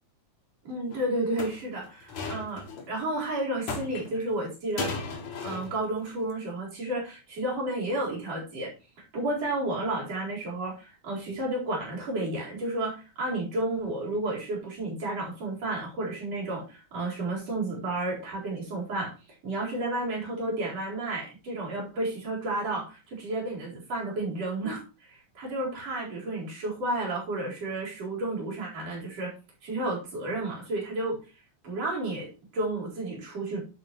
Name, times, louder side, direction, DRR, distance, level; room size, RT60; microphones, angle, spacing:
voice 1, 0.7-4.9 5.4-8.7 9.1-19.1 19.4-29.3 29.6-31.2 31.6-33.6, right 2 dB, 55° right, -4 dB, 5.4 m, -32 dB
sound 1, 0.9-1.0 1.4-2.9 3.7-4.3 4.8-5.9 6.1-6.3, left 4 dB, 70° left, 3.4 m, -35 dB
10.0 x 9.2 x 3.0 m, 0.33 s
omnidirectional pair, 3.4 m